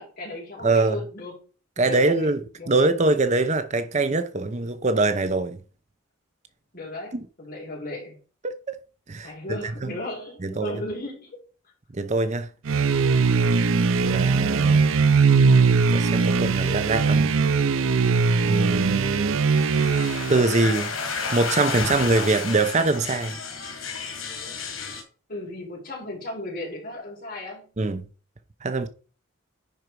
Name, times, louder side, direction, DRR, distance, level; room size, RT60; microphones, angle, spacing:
voice 1, 0.0-1.4 1.8-2.3 2.6-2.7 6.7-8.2 9.2-11.4 25.3-27.7, left 2 dB, 45° left, 4.6 m, -36 dB
voice 2, 0.6-1.0 1.8-5.6 7.1-7.2 8.4-8.8 9.1-9.9 10.4-10.8 11.9-12.5 14.0-14.8 15.9-17.3 18.4-19.4 20.3-20.9 21.3-23.4 27.8-28.0 28.6-28.9, right 3 dB, 35° right, 0.7 m, -23 dB
sound 1, 12.7-20.5, right 4 dB, 75° right, 0.5 m, -20 dB
sound 2, 19.6-25.0, left 5 dB, 75° left, 2.8 m, -31 dB
10.0 x 4.6 x 4.7 m
head